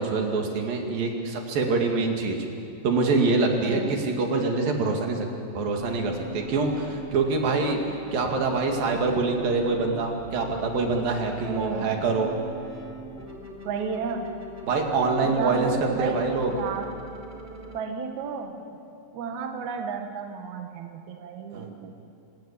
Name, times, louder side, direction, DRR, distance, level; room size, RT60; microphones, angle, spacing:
voice 1, 0.0-2.5 2.8-5.3 5.6-7.8 8.1-12.3 14.7-16.5 21.5-21.7, right 3 dB, 85° right, 2 dB, 4.1 m, -25 dB
voice 2, 3.6-4.0 11.4-12.0 13.6-14.3 15.2-16.2 16.5-16.9 17.7-18.8 19.1-22.0, right 6 dB, 65° right, 4 dB, 2.6 m, -33 dB
sound 1, 5.8-17.8, right 1 dB, 5° right, 2.2 m, -42 dB
27.0 x 17.5 x 8.9 m, 2.6 s
omnidirectional pair, 4.0 m